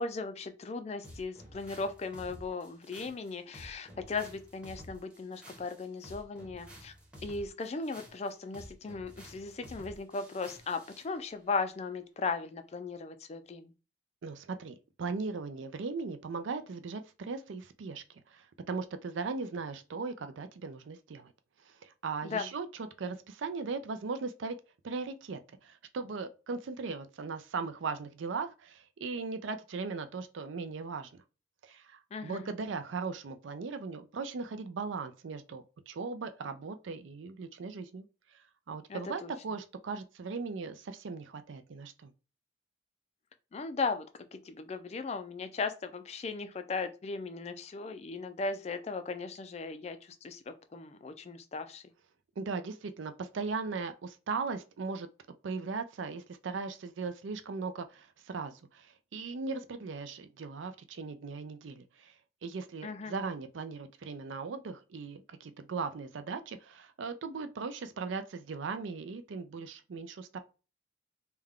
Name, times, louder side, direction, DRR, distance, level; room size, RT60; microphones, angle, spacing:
voice 1, 0.0-6.9 7.2-13.7 22.2-22.5 32.1-32.5 38.9-39.3 43.5-44.1 44.3-51.8 62.8-63.1, left 4 dB, 35° left, 0.3 m, -37 dB
sound 1, 1.0-11.1, equal, 5° right, 0.8 m, -51 dB
voice 2, 14.2-18.0 18.3-21.3 22.0-22.7 23.0-24.6 24.8-31.2 31.6-38.0 38.7-42.1 52.4-55.1 55.4-58.8 59.1-62.1 62.4-70.4, right 4 dB, 75° right, 0.4 m, -38 dB
3.4 x 2.2 x 3.5 m
head